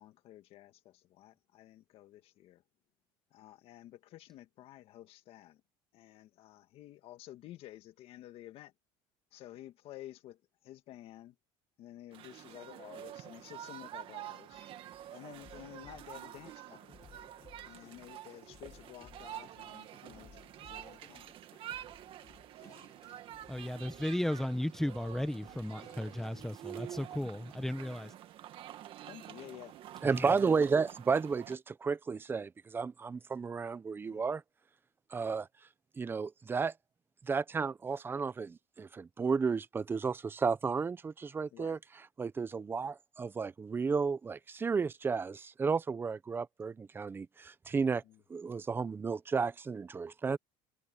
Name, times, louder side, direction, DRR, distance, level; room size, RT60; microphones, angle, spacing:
voice 1, 0.0-2.6 3.3-5.6 5.9-8.7 9.3-10.4 10.6-11.3 11.8-14.6 15.1-16.9 17.6-21.3 22.6-22.9 26.2-26.5 28.0-28.1 29.1-29.8 34.1-34.2 41.5-41.8 48.1-48.2, left 14 dB, 60° left, 1.8 m, -52 dB
sound 1, 12.1-31.6, right 12 dB, 50° right, 1.8 m, -48 dB
sound 2, 14.5-26.3, left 7 dB, 30° left, 7.9 m, -60 dB
voice 2, 23.5-28.1 30.1-30.3, left 1 dB, 5° left, 1.2 m, -35 dB
voice 3, 30.0-34.4 35.1-35.5 36.0-36.7 37.2-48.0 48.3-50.4, right 5 dB, 20° right, 0.8 m, -33 dB
cardioid pair, 135°, 11 cm